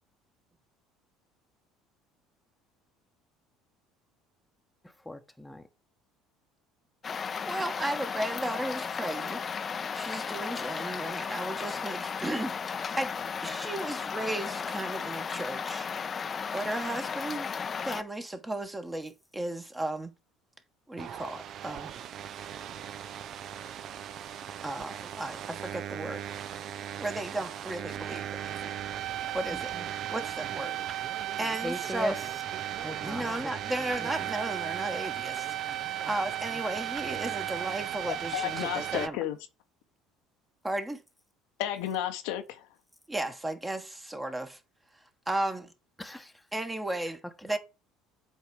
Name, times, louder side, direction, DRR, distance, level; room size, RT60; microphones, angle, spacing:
voice 1, 5.0-5.7 29.5-29.9 31.6-32.2 32.8-33.5 34.0-34.3 46.0-46.4, left 1 dB, 5° left, 1.0 m, -39 dB
sound 1, 7.0-18.0, left 6 dB, 35° left, 0.6 m, -35 dB
voice 2, 7.5-9.4 9.9-12.6 12.9-13.1 13.4-15.9 16.5-17.5 17.8-20.1 20.9-21.9 24.6-26.3 27.0-28.8 29.3-29.7 30.1-31.1 31.4-32.2 33.0-39.2 40.6-41.0 43.1-44.6 45.3-45.7 46.5-47.6, right 1 dB, 15° right, 1.2 m, -35 dB
sound 2, 21.0-39.1, right 11 dB, 50° right, 0.5 m, -36 dB
voice 3, 38.1-39.4 41.6-42.7, left 12 dB, 70° left, 0.8 m, -32 dB
8.1 x 3.5 x 4.8 m
hypercardioid pair, 65°, 0 cm